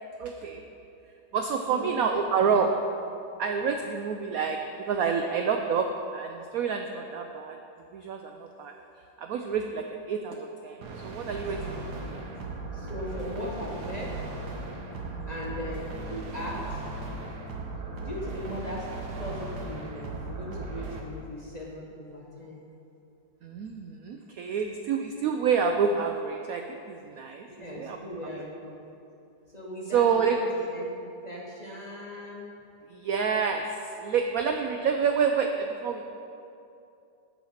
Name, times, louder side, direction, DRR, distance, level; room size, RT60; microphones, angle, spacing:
voice 1, 0.2-0.6 1.3-2.7 3.4-7.6 7.9-8.7 9.2-12.2 15.1-15.3 23.4-28.0 29.9-30.4 32.9-36.0, right 6 dB, 75° right, 4 dB, 0.8 m, -28 dB
voice 2, 1.7-2.6 12.7-14.2 15.3-16.8 17.9-18.9 19.2-22.6 27.4-28.8 29.5-30.5 30.7-31.0 31.2-32.5, left 1 dB, 25° left, -4 dB, 1.0 m, -38 dB
sound 1, 10.8-21.0, right 3 dB, 60° right, 1.5 m, -37 dB
14.5 x 5.7 x 4.3 m, 2.6 s
omnidirectional pair, 2.0 m